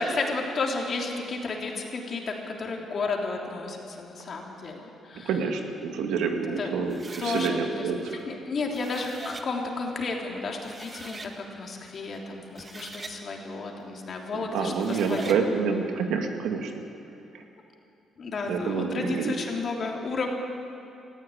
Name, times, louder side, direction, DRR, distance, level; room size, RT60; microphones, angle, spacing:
voice 1, 0.0-5.3 6.6-6.7 7.2-15.5 18.2-20.3, left 3 dB, 50° left, 1 dB, 3.3 m, -32 dB
voice 2, 5.2-8.2 14.3-16.8 17.3-17.4 18.4-19.4, right 5 dB, 85° right, 4 dB, 2.1 m, -28 dB
sound 1, 6.9-7.5 8.5-9.5 10.3-10.4 10.6-11.3 12.4-13.2 14.7-15.4, right 3 dB, 30° right, 1.7 m, -41 dB
18.0 x 15.0 x 9.9 m, 2.8 s
cardioid pair, 90°, 0 cm